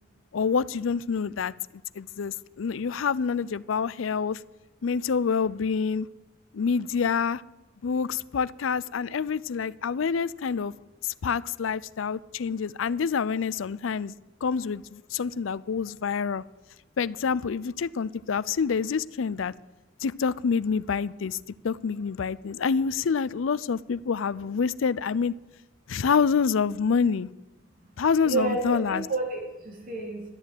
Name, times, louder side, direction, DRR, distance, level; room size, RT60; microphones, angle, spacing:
voice 1, 0.3-1.5 2.0-4.4 4.8-6.1 6.5-7.4 7.8-10.7 11.0-14.1 14.4-16.4 17.0-19.5 20.0-21.4 21.6-25.3 25.9-27.3 28.0-29.1, left 6 dB, 80° left, 0.5 m, -27 dB
voice 2, 28.3-30.2, right 3 dB, 45° right, 3.7 m, -30 dB
12.5 x 8.9 x 9.2 m
head